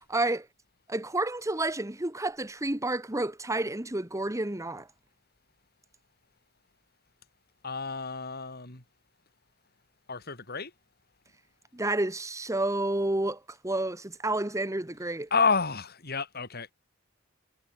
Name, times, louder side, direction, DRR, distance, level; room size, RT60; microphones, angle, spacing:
voice 1, 0.1-0.5 0.9-4.9 11.7-15.3, right 2 dB, 15° right, 1.4 m, -30 dB
voice 2, 7.6-8.8 10.1-10.7 15.3-16.7, left 4 dB, 50° left, 4.7 m, -29 dB
head